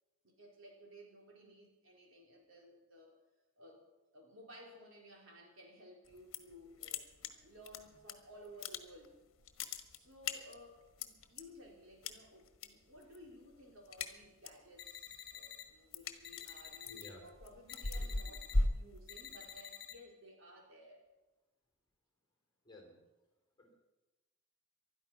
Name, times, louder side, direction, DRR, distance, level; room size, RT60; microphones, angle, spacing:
voice 1, 0.2-3.1 3.6-3.8 4.1-9.2 9.9-21.0, equal, 60° right, 0 dB, 4.2 m, -57 dB
sound 1, 6.1-6.6 6.8-8.1 8.5-9.1 9.4-11.4 12.0-12.7 13.0-13.3 13.6-14.7 15.1-19.6, left 2 dB, 60° left, 1.4 m, -38 dB
sound 2, 14.8-15.6 16.2-17.1 17.7-18.5 19.1-19.9, left 9 dB, 45° left, 1.6 m, -50 dB
voice 2, 16.9-17.2 17.9-18.1 22.6-23.0 23.6-23.7, left 1 dB, 20° left, 2 dB, 3.8 m, -56 dB
20.0 x 12.5 x 5.7 m, 1.1 s
head